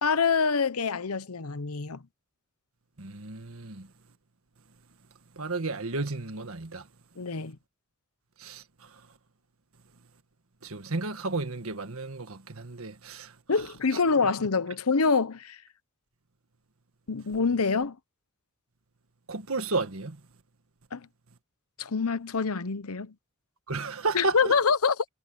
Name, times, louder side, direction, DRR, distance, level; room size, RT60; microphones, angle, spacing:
voice 1, 0.0-2.0 7.2-7.6 13.5-15.6 17.1-18.0 20.9-21.1 21.8-23.1 24.1-25.0, left 5 dB, 85° left, 0.9 m, -26 dB
voice 2, 3.0-3.9 5.4-6.8 8.4-8.6 10.6-13.3 19.3-20.2 23.7-24.4, right 3 dB, 70° right, 1.7 m, -32 dB
head